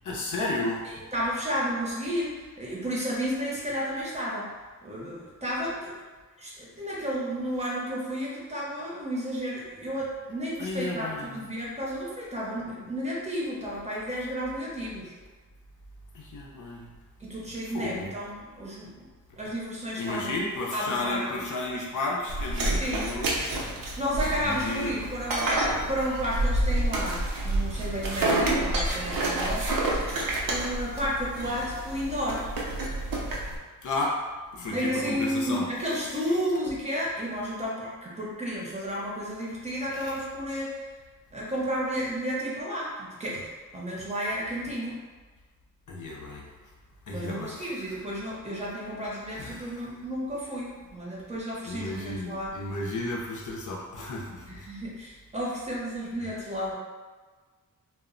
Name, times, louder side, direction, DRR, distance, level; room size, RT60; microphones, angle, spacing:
voice 1, 0.0-0.8 10.6-11.5 16.1-16.9 17.7-18.1 19.9-23.7 24.4-24.9 33.8-34.1 34.5-36.1 39.9-40.1 45.9-46.5 47.1-48.0 49.3-49.9 51.6-54.5 56.2-56.4, left 2 dB, 65° left, -3 dB, 0.6 m, -33 dB
voice 2, 0.8-4.5 4.8-6.0 6.4-15.1 17.2-18.9 19.4-20.3 20.7-21.4 22.8-23.1 24.0-29.7 30.5-32.4 34.7-40.8 41.3-45.0 47.1-52.5 54.5-56.8, equal, 20° right, -6 dB, 0.6 m, -32 dB
sound 1, 22.3-33.6, right 1 dB, 85° right, 0.6 m, -29 dB
2.1 x 2.0 x 3.7 m, 1.4 s
wide cardioid pair, 120°, 33 cm